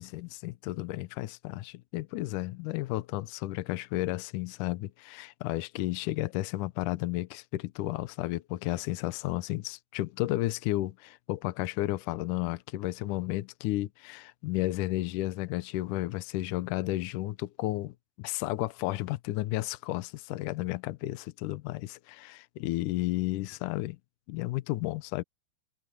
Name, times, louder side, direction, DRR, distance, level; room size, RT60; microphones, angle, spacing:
voice 1, 0.0-24.0 24.3-25.2, left 17 dB, 90° left, 1.8 m, -33 dB
omnidirectional pair, 4.7 m